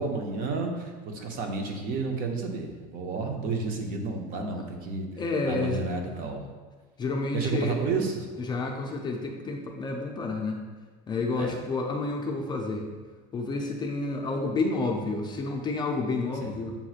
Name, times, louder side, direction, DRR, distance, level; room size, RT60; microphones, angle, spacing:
voice 1, 0.0-5.1 5.4-6.5 7.3-8.3 11.4-11.5 16.4-16.6, right 4 dB, 50° right, 3 dB, 0.7 m, -31 dB
voice 2, 5.2-5.8 7.0-7.8 8.4-10.6 11.1-12.9 13.3-16.7, left 3 dB, 20° left, 1 dB, 0.4 m, -30 dB
6.9 x 3.0 x 2.4 m, 1.3 s
cardioid pair, 140°, 20 cm